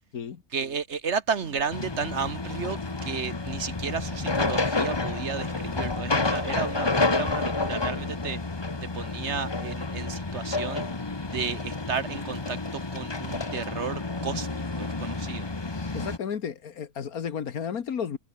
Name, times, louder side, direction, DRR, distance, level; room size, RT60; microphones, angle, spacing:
voice 1, 0.5-8.4 8.8-10.8 11.3-15.5, right 6 dB, 50° right, 1.4 m, -33 dB
sound 1, 1.4-1.9 2.8-3.3 4.1-4.6 5.5-6.0, equal, 15° right, 8.0 m, -51 dB
sound 2, 1.7-16.2, left 3 dB, 20° left, 1.1 m, -30 dB
voice 2, 15.9-18.2, left 7 dB, 75° left, 1.8 m, -32 dB
omnidirectional pair, 1.6 m